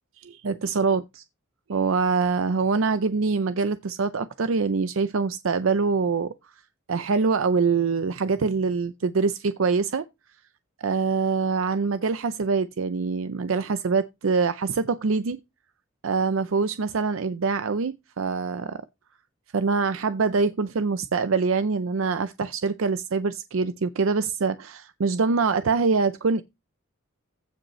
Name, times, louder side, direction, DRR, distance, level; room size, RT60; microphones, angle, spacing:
voice 1, 0.2-1.2 1.7-6.3 6.9-10.1 10.8-15.4 16.0-18.8 19.5-26.4, right 4 dB, 75° right, 0.5 m, -24 dB
15.5 x 5.3 x 3.1 m
head